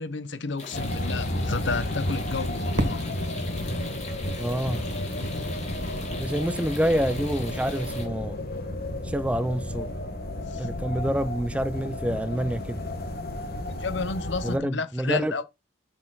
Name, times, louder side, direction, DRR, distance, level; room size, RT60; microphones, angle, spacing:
voice 1, 0.0-3.0 10.5-10.7 13.8-15.5, left 4 dB, 65° left, 0.8 m, -31 dB
sound 1, 0.6-8.0, left 3 dB, 35° left, 2.6 m, -41 dB
sound 2, 0.7-14.6, left 1 dB, 50° left, 1.3 m, -32 dB
Fireworks, 2.8-5.6, right 1 dB, 75° right, 1.9 m, -34 dB
voice 2, 4.4-4.8 6.2-8.4 9.0-9.9 10.6-12.8 14.4-15.3, right 1 dB, 5° right, 0.4 m, -27 dB
6.9 x 6.1 x 4.0 m
head